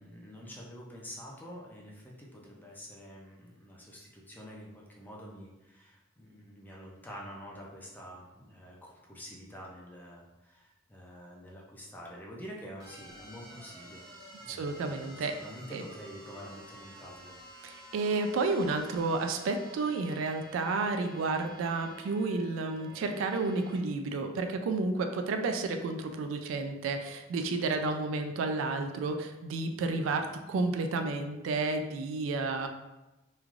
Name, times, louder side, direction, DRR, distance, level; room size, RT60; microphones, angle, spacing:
voice 1, 0.0-14.0 14.4-17.4, equal, 10° left, -3 dB, 0.5 m, -47 dB
sound 1, 12.8-23.8, right 1 dB, 20° right, 0.8 m, -51 dB
voice 2, 14.5-15.3 15.7-15.8 17.6-32.7, right 3 dB, 75° right, 7 dB, 0.3 m, -31 dB
3.1 x 2.4 x 2.4 m, 1.0 s
head